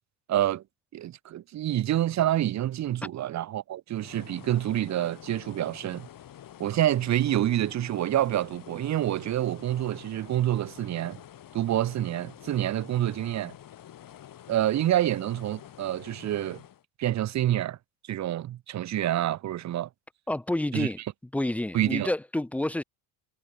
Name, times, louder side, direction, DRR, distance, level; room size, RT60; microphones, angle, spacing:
voice 1, 0.3-0.6 0.9-6.1 6.6-11.2 11.5-13.5 14.5-16.6 17.0-17.8 18.1-19.9 20.7-20.9 21.7-22.1, right 12 dB, 35° right, 0.7 m, -27 dB
sound 1, 3.9-16.8, left 11 dB, 45° left, 2.0 m, -48 dB
voice 2, 20.3-21.0 21.3-22.8, left 1 dB, 5° left, 0.3 m, -29 dB
hypercardioid pair, 75°, 47 cm